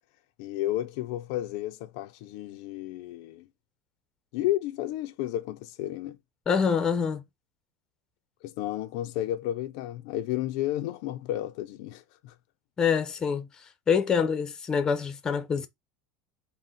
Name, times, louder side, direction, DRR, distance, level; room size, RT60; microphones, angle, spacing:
voice 1, 0.4-3.5 4.3-6.2 8.4-12.3, left 14 dB, 65° left, 0.5 m, -32 dB
voice 2, 6.5-7.2 12.8-13.5 13.9-15.7, left 6 dB, 20° left, 0.7 m, -25 dB
3.8 x 2.2 x 4.0 m
supercardioid pair, 130°, 3 cm